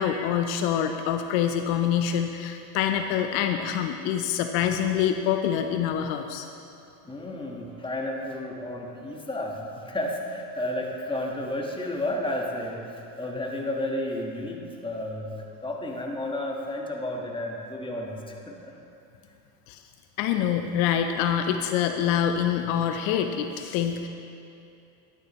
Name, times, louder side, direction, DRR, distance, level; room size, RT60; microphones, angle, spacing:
voice 1, 0.0-6.5 19.7-19.8 20.2-24.1, left 9 dB, 70° left, 6 dB, 0.7 m, -25 dB
voice 2, 7.0-12.9 13.2-15.3 15.6-18.7, left 1 dB, 10° left, -1 dB, 1.4 m, -32 dB
11.5 x 9.9 x 3.0 m, 2.6 s
supercardioid pair, 85°, 49 cm